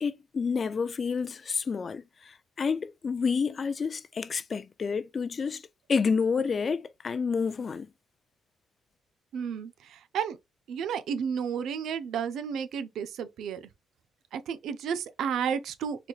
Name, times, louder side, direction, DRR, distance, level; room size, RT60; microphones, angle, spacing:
voice 1, 0.0-5.6 5.9-7.9, left 5 dB, 40° left, 0.4 m, -29 dB
voice 2, 9.3-10.4 10.7-13.6 14.3-16.1, right 7 dB, 75° right, 0.5 m, -32 dB
4.0 x 3.1 x 2.3 m
cardioid pair, 90°, 0 cm